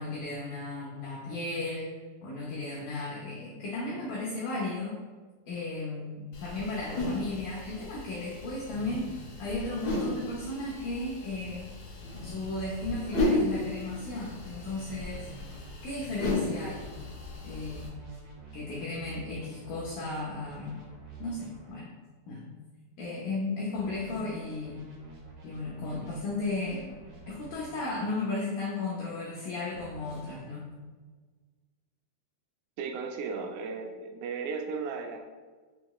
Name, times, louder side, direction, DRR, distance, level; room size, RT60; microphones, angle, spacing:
voice 1, 0.0-1.9 2.2-5.0 5.5-11.7 12.2-15.3 15.8-16.9 17.4-18.0 18.5-20.8 21.2-21.9 22.3-22.5 23.0-24.8 25.4-26.9 27.3-30.7, left 2 dB, 85° left, -4 dB, 1.9 m, -35 dB
sound 1, 6.3-17.9, left 1 dB, 65° left, 1.7 m, -35 dB
sound 2, 12.1-15.7 17.7-21.7 23.7-27.7 29.7-30.4, right 5 dB, 70° right, 1.7 m, -49 dB
voice 2, 32.8-35.3, right 5 dB, 90° right, 3 dB, 2.6 m, -35 dB
6.0 x 2.9 x 2.3 m, 1.4 s
omnidirectional pair, 4.6 m